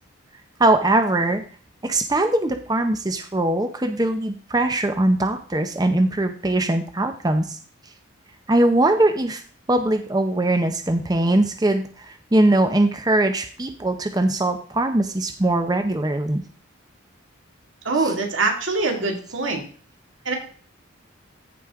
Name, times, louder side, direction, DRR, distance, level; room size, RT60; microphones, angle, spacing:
voice 1, 0.6-1.4 1.8-7.6 8.5-9.4 9.7-16.4, right 1 dB, 20° right, 7 dB, 0.6 m, -21 dB
voice 2, 17.8-19.6 20.2-20.3, right 3 dB, 75° right, 2 dB, 2.1 m, -23 dB
14.5 x 5.0 x 3.6 m, 0.42 s
head